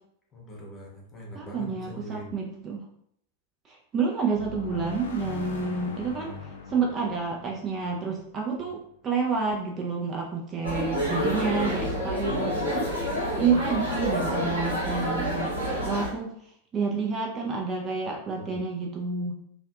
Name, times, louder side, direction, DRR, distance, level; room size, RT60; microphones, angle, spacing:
voice 1, 0.3-2.3 6.2-6.4 18.3-18.6, right 1 dB, 20° left, -2 dB, 0.8 m, -43 dB
voice 2, 1.3-2.8 3.7-15.6 15.8-19.3, right 5 dB, 25° right, -1 dB, 0.3 m, -29 dB
sound 1, 4.3-8.9, left 5 dB, 65° left, 0.4 m, -40 dB
sound 2, 10.6-16.1, equal, 90° right, 0.9 m, -28 dB
2.5 x 2.2 x 2.3 m, 0.70 s
figure-of-eight pair, 90°, 0 cm